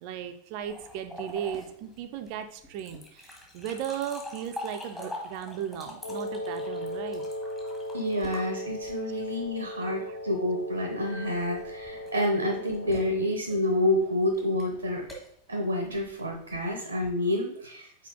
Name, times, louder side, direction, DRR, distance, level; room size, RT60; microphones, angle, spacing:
voice 1, 0.0-7.2 10.1-10.2, right 9 dB, 45° right, 7 dB, 0.5 m, -36 dB
sound 1, 0.6-9.3 11.0-16.7, left 1 dB, 15° left, 1.5 m, -44 dB
Wind instrument woodwind instrument, 6.0-13.3, left 1 dB, 85° left, 0.9 m, -37 dB
voice 2, 7.9-15.0 15.5-18.1, left 1 dB, 80° right, 3 dB, 0.8 m, -28 dB
5.8 x 4.3 x 3.8 m, 0.65 s
figure-of-eight pair, 90°, 0 cm